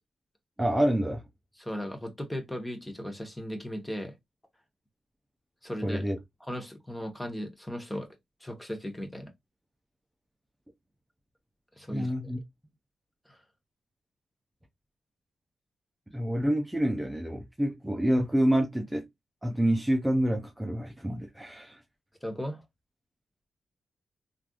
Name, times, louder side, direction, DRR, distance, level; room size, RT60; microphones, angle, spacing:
voice 1, 0.6-1.2 5.8-6.2 11.9-12.4 16.1-19.0 19.4-21.8, equal, 10° right, 0.6 m, -27 dB
voice 2, 1.6-4.1 5.6-6.0 6.5-8.1 8.4-9.3 11.8-12.1 13.3-13.4 22.2-22.6, equal, 10° left, 1.0 m, -36 dB
3.2 x 2.5 x 2.3 m
cardioid pair, 65°, 0 cm